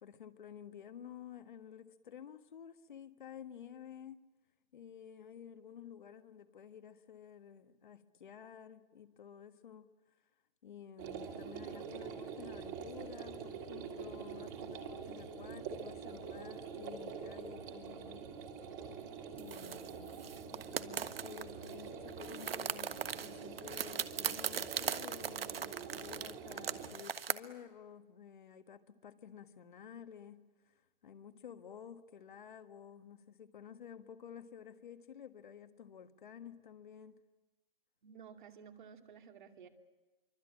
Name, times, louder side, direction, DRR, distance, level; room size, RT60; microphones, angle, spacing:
voice 1, 0.0-4.3 4.7-9.9 10.6-18.2 19.4-20.1 20.5-30.4 31.0-37.2, left 8 dB, 55° left, 9 dB, 1.6 m, -52 dB
sound 1, 11.0-26.9, right 6 dB, 20° right, 2.2 m, -45 dB
sound 2, 19.4-21.8 22.1-27.3, right 8 dB, 80° right, 1.4 m, -39 dB
voice 2, 38.0-39.7, right 7 dB, 55° right, 4 dB, 2.5 m, -54 dB
26.0 x 24.5 x 8.9 m, 1.2 s
hypercardioid pair, 170°, 29 cm